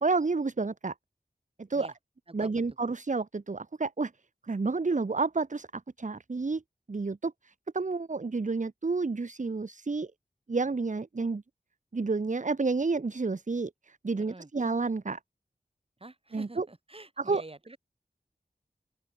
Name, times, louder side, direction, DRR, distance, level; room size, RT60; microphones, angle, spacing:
voice 1, 0.0-0.9 1.6-1.9 2.3-4.1 4.5-6.6 6.9-10.1 10.5-11.4 11.9-15.2 16.3-16.7 17.2-17.4, right 3 dB, 50° right, 1.2 m, -30 dB
voice 2, 14.2-14.5 16.0-17.8, right 2 dB, 35° right, 3.8 m, -47 dB
open air
wide cardioid pair, 70°, 16 cm